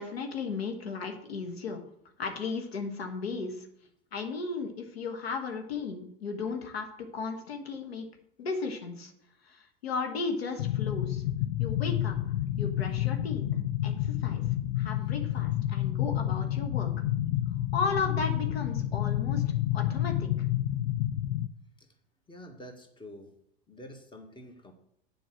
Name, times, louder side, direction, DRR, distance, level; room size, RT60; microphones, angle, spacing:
voice 1, 0.0-1.8 2.2-3.7 4.1-8.1 8.4-9.1 9.4-11.2 11.6-12.1 12.6-13.4 13.8-14.4 14.8-16.9 17.7-19.4 19.7-20.3, left 4 dB, 85° left, 4 dB, 1.5 m, -35 dB
sound 1, 10.6-21.5, left 13 dB, 55° left, 0.6 m, -29 dB
voice 2, 22.3-23.4 23.7-24.7, left 1 dB, 15° left, 5 dB, 1.8 m, -47 dB
7.7 x 5.3 x 7.5 m, 0.70 s
hypercardioid pair, 90°, 30 cm